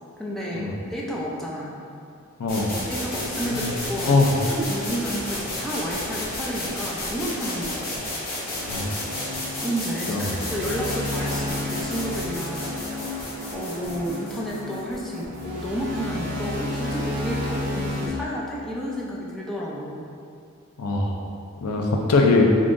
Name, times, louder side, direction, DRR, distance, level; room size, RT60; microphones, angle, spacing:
voice 1, 0.2-1.7 2.9-7.9 9.6-13.2 13.5-20.1, equal, ahead, -5 dB, 0.4 m, -31 dB
voice 2, 2.4-2.8 3.5-3.7 4.1-4.3 8.7-8.9 10.1-10.3 20.8-21.2 21.6-22.4, left 3 dB, 85° left, 0 dB, 0.5 m, -22 dB
sound 1, 2.5-16.2, left 1 dB, 45° left, 0.9 m, -32 dB
sound 2, 8.6-18.1, left 1 dB, 50° right, 0.7 m, -32 dB
3.8 x 3.6 x 2.5 m, 2.4 s
head